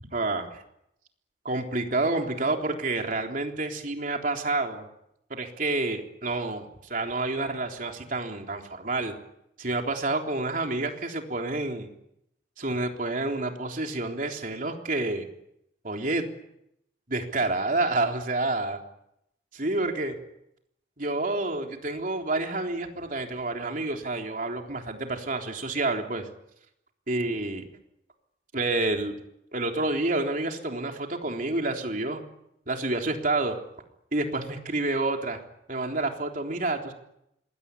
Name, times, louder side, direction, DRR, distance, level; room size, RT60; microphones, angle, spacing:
voice 1, 0.1-0.6 1.4-4.9 5.3-9.2 9.6-11.9 12.6-15.3 15.8-16.3 17.1-18.8 19.5-20.2 21.0-26.3 27.1-27.6 28.5-29.1 29.5-32.2 32.7-33.6 34.1-35.4 35.7-36.9, right 2 dB, 45° right, 3 dB, 3.7 m, -29 dB
26.5 x 21.5 x 9.9 m, 0.81 s
head